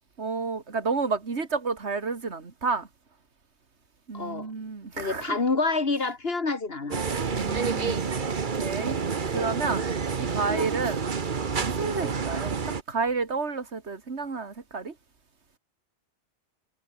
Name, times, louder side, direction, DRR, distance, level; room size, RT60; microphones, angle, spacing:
voice 1, 0.2-2.9 4.1-5.4 7.3-9.0 9.3-9.9 10.2-11.1 11.6-14.9, right 4 dB, 75° right, 2.5 m, -31 dB
voice 2, 4.1-4.5 5.0-7.0, left 3 dB, 60° left, 2.3 m, -27 dB
sound 1, 6.9-12.8, right 5 dB, 45° right, 1.3 m, -29 dB
omnidirectional pair, 1.2 m